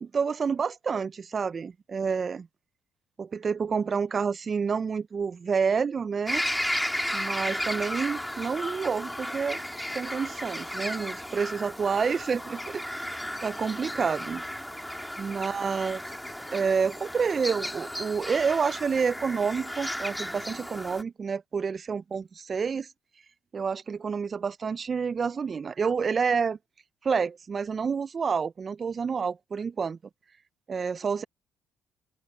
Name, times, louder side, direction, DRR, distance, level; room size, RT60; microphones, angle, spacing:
voice 1, 0.0-2.5 3.2-6.4 7.1-9.6 9.9-14.4 15.2-16.0 16.5-22.9 23.5-26.6 27.0-30.0 30.7-31.2, right 5 dB, 45° right, 0.6 m, -29 dB
sound 1, 6.3-21.0, equal, 5° left, 4.0 m, -34 dB
open air
hypercardioid pair, 55°, 0 cm